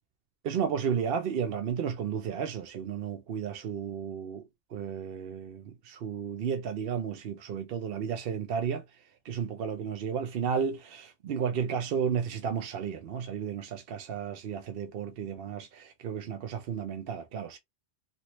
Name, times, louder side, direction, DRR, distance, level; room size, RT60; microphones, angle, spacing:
voice 1, 0.4-4.4 4.7-8.8 9.2-17.6, right 7 dB, 65° right, 0.7 m, -33 dB
2.9 x 2.7 x 3.1 m
omnidirectional pair, 1.1 m